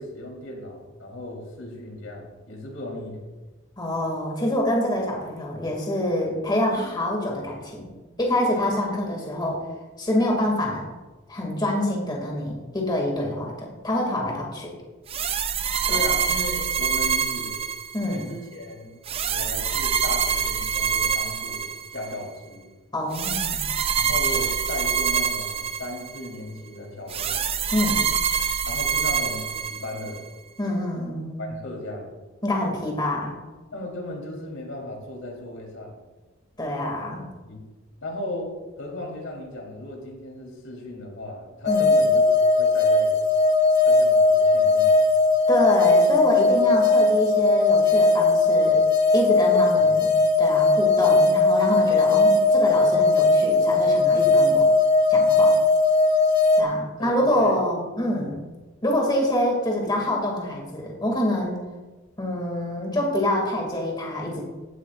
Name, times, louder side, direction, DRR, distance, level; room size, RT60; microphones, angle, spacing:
voice 1, 0.0-3.2 15.9-17.6 18.0-19.0 19.2-22.7 24.0-27.4 28.6-30.2 31.4-32.1 33.7-36.0 37.4-37.6 38.0-38.5 38.8-43.2 43.8-44.9 49.8-49.9 57.0-57.6, left 1 dB, 80° left, -1 dB, 3.6 m, -36 dB
voice 2, 3.8-7.9 8.2-9.6 10.0-10.9 11.3-14.7 15.9-16.0 17.9-18.2 22.9-23.6 27.7-28.0 30.6-31.4 32.4-33.3 36.6-37.2 41.7-41.9 45.5-48.8 49.1-50.1 50.4-54.7 55.1-55.5 56.6-58.5 58.8-61.6 62.2-64.4, left 1 dB, 20° left, -1 dB, 2.3 m, -26 dB
sound 1, 15.1-18.2 19.1-22.2 23.1-26.3 27.1-30.2, right 7 dB, 30° right, 0.4 m, -25 dB
sound 2, 41.6-56.6, left 3 dB, 55° left, 1.5 m, -18 dB
16.0 x 11.5 x 2.5 m, 1.2 s
head